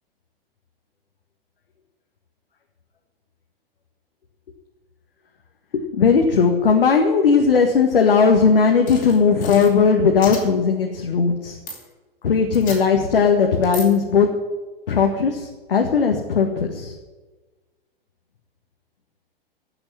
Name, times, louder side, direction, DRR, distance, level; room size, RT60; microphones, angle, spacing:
voice 1, 5.7-11.6 12.2-14.3 14.9-16.9, left 5 dB, 70° left, 3 dB, 1.7 m, -17 dB
sound 1, 8.9-9.7 10.2-10.4 11.7-11.8 12.5-12.8 13.6-13.9, left 3 dB, 30° left, 4.5 m, -33 dB
15.0 x 7.0 x 9.9 m, 1.2 s
figure-of-eight pair, 100°, 29 cm